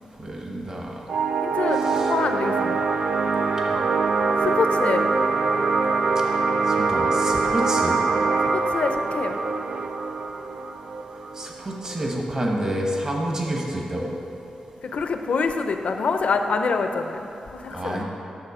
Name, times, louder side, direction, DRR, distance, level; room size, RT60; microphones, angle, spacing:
voice 1, 0.2-1.0 1.7-2.1 3.7-3.8 6.7-8.0 11.3-14.2 17.7-18.0, right 1 dB, 30° right, -1 dB, 1.1 m, -28 dB
sound 1, 1.1-12.1, right 4 dB, 70° right, 0.4 m, -24 dB
voice 2, 1.4-2.9 4.4-5.1 8.5-9.4 14.8-18.0, left 4 dB, 65° left, 6 dB, 0.6 m, -26 dB
9.9 x 6.8 x 4.9 m, 2.9 s
wide cardioid pair, 160°, 2 cm